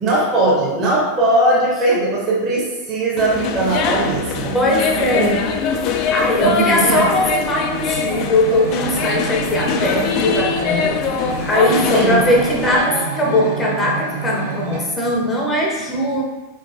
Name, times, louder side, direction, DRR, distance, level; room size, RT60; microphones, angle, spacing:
voice 1, 0.0-4.5 5.1-5.3 6.4-7.0 11.9-12.2, right 2 dB, 30° right, -5 dB, 1.1 m, -19 dB
sound 1, 3.2-12.9, left 6 dB, 40° left, 0.4 m, -23 dB
voice 2, 4.5-5.3 6.1-16.2, left 1 dB, 15° left, -1 dB, 0.7 m, -19 dB
sound 2, 6.7-14.8, right 4 dB, 60° right, 1.2 m, -28 dB
4.9 x 3.8 x 2.6 m, 1.2 s
figure-of-eight pair, 90°, 0 cm